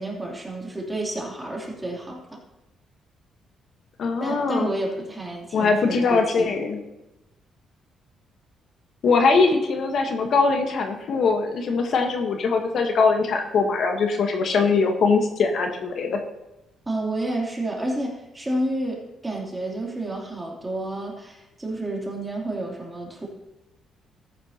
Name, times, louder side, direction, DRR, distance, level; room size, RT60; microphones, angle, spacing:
voice 1, 0.0-2.4 4.2-6.5 16.9-23.3, right 1 dB, 15° right, -2 dB, 3.0 m, -30 dB
voice 2, 4.0-4.7 5.5-6.8 9.0-16.2, left 4 dB, 60° left, 4 dB, 1.2 m, -21 dB
14.0 x 9.8 x 2.9 m, 0.97 s
cardioid pair, 90°, 0 cm